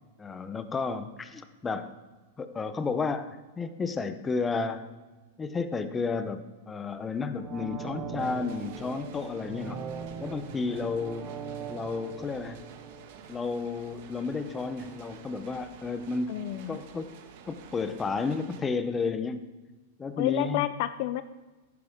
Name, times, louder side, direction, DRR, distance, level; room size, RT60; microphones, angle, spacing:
voice 1, 0.2-1.9 2.4-3.3 3.6-4.8 5.4-9.8 10.2-11.3 11.7-12.6 13.3-16.4 16.7-17.2 17.5-19.5 20.0-20.7, left 4 dB, 15° left, 10 dB, 0.7 m, -32 dB
sound 1, 7.2-14.0 14.4-14.5, right 7 dB, 30° right, 1.5 m, -41 dB
sound 2, 8.2-18.6, right 7 dB, 55° right, 1.3 m, -50 dB
voice 2, 16.3-16.8 20.2-21.2, left 14 dB, 55° left, 13 dB, 0.4 m, -30 dB
11.5 x 9.5 x 3.6 m, 1.2 s
supercardioid pair, 145°, 0 cm